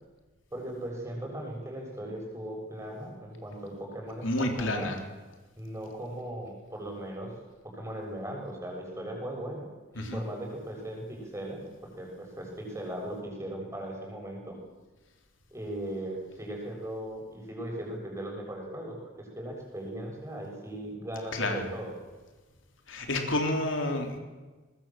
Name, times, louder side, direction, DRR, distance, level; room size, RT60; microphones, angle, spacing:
voice 1, 0.5-4.9 5.6-7.3 7.6-9.7 9.9-11.6 12.0-14.6 15.5-21.9, right 1 dB, 15° right, 0 dB, 7.3 m, -38 dB
voice 2, 4.2-5.0 10.0-10.2 21.3-21.7 22.9-24.2, left 2 dB, 80° left, 4 dB, 3.6 m, -29 dB
23.5 x 20.5 x 7.6 m, 1.3 s
head